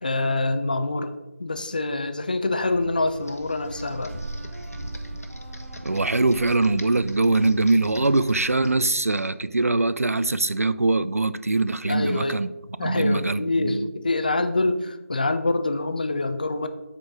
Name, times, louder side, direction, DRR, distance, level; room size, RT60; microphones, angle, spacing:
voice 1, 0.0-1.1 1.4-4.1 11.9-12.4 12.8-16.7, left 2 dB, 35° left, 9 dB, 0.5 m, -25 dB
sound 1, 2.6-8.7, right 1 dB, 50° right, 2.0 m, -38 dB
Computer keyboard, 3.2-9.3, left 1 dB, 80° left, 1.1 m, -47 dB
voice 2, 5.8-12.5 12.8-13.9, right 2 dB, 75° right, 15 dB, 0.4 m, -22 dB
7.4 x 4.4 x 4.9 m, 1.0 s
figure-of-eight pair, 165°, 8 cm